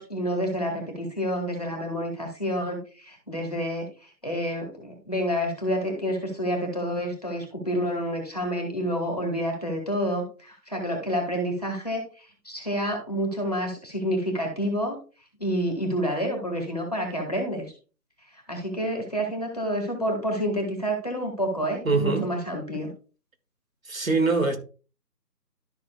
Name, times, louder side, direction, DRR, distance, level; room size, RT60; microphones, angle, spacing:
voice 1, 0.0-15.0 15.4-17.7 18.5-22.9, equal, 25° left, 1.5 m, -29 dB
voice 2, 21.9-22.3 23.9-24.6, right 3 dB, 55° right, 1.9 m, -23 dB
12.5 x 6.2 x 2.3 m
figure-of-eight pair, 175°, 49 cm